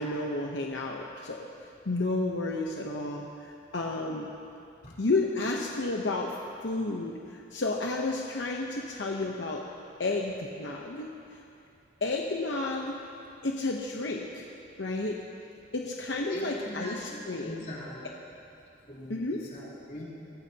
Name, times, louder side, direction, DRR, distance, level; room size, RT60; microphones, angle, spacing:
voice 1, 0.0-1.5 1.9-4.3 5.0-6.3 6.6-9.6 10.0-11.1 12.0-12.9 13.4-14.5 14.8-15.2 15.7-17.6 19.1-19.4, left 2 dB, 80° left, 0 dB, 0.9 m, -31 dB
voice 2, 16.3-18.1 18.8-20.0, equal, 40° left, -6 dB, 3.6 m, -40 dB
24.5 x 15.0 x 2.9 m, 2.6 s
head